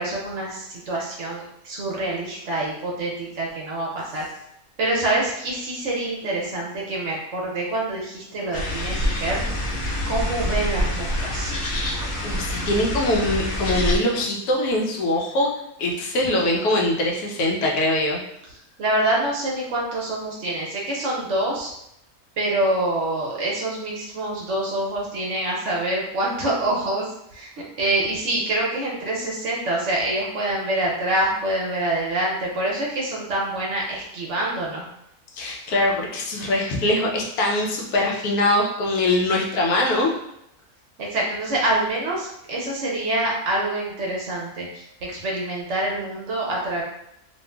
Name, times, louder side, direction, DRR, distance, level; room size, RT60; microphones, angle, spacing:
voice 1, 0.0-4.2 4.8-9.7 10.1-11.5 18.8-21.7 22.4-27.5 27.8-34.8 41.0-46.8, right 1 dB, 65° right, -3 dB, 0.8 m, -26 dB
sound 1, 8.5-14.0, left 1 dB, 65° left, 0.9 m, -26 dB
voice 2, 12.2-15.5 15.8-18.2 35.3-40.1, left 1 dB, 85° left, -1 dB, 1.1 m, -22 dB
3.0 x 2.4 x 2.2 m, 0.77 s
omnidirectional pair, 1.6 m